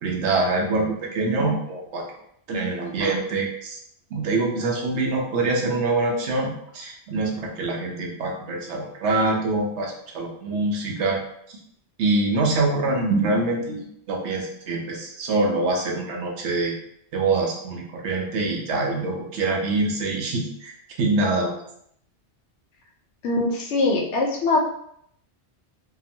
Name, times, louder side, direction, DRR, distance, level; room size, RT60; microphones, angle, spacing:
voice 1, 0.0-2.0 2.5-3.8 4.1-11.2 12.0-16.7 17.1-21.6, right 2 dB, 85° right, 0 dB, 0.9 m, -25 dB
voice 2, 23.2-24.6, left 2 dB, 85° left, 0 dB, 0.9 m, -22 dB
2.8 x 2.0 x 2.7 m, 0.71 s
omnidirectional pair, 1.1 m